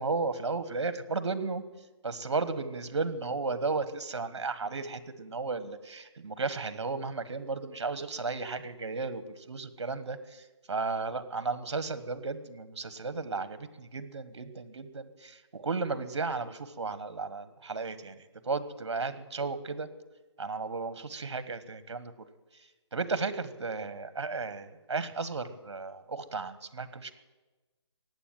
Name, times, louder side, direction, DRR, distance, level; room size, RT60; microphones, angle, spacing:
voice 1, 0.0-1.6 2.0-9.2 9.5-18.2 18.4-19.9 20.4-22.1 22.9-27.1, right 4 dB, 65° right, 13 dB, 1.5 m, -34 dB
15.5 x 9.5 x 9.0 m, 1.2 s
hypercardioid pair, 170°, 15 cm